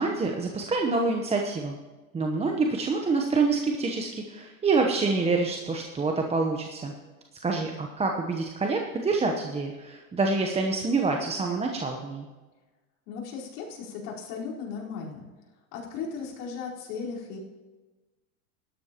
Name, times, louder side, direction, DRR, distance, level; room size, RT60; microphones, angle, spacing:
voice 1, 0.0-1.8 2.1-6.9 7.4-12.3, right 3 dB, 15° right, 2 dB, 0.9 m, -27 dB
voice 2, 13.1-15.3 15.7-17.4, left 5 dB, 60° left, -5 dB, 4.4 m, -36 dB
17.0 x 12.5 x 3.0 m, 1.2 s
supercardioid pair, 120°, 43 cm